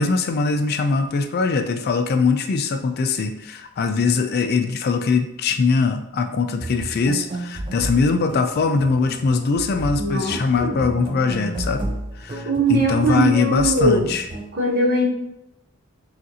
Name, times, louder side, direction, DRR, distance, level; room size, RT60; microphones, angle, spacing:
voice 1, 0.0-11.8 12.2-14.2, left 4 dB, 50° left, 7 dB, 0.4 m, -21 dB
sound 1, 6.6-14.5, right 1 dB, 25° right, 0.4 m, -33 dB
voice 2, 10.0-10.8 12.4-14.1 14.5-15.0, right 2 dB, 50° right, -2 dB, 1.1 m, -21 dB
6.2 x 2.5 x 2.8 m, 0.82 s
head